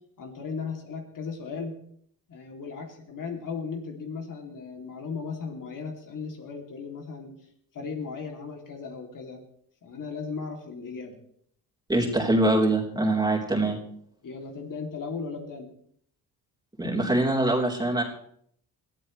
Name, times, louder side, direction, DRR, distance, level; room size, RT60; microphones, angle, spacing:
voice 1, 0.2-1.7 2.3-7.3 7.7-9.4 9.8-11.2 14.2-15.7, left 5 dB, 50° left, 2 dB, 2.9 m, -36 dB
voice 2, 11.9-13.8 16.8-18.0, right 1 dB, 10° right, -2 dB, 3.7 m, -23 dB
21.5 x 14.0 x 3.3 m, 0.66 s
cardioid pair, 110°, 41 cm